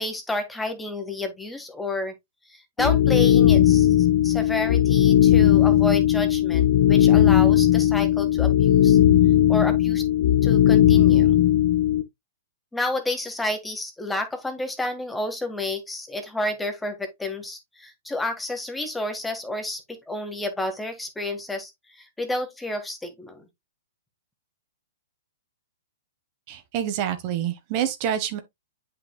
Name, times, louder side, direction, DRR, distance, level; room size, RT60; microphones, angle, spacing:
voice 1, 0.0-2.1 2.5-9.0 9.5-10.0 10.4-11.4 12.7-23.4, left 1 dB, 5° left, 1.6 m, -30 dB
sound 1, 2.8-12.0, left 11 dB, 55° left, 0.9 m, -17 dB
voice 2, 26.5-28.4, right 10 dB, 40° right, 1.2 m, -27 dB
8.4 x 5.5 x 2.2 m
hypercardioid pair, 125°, 0 cm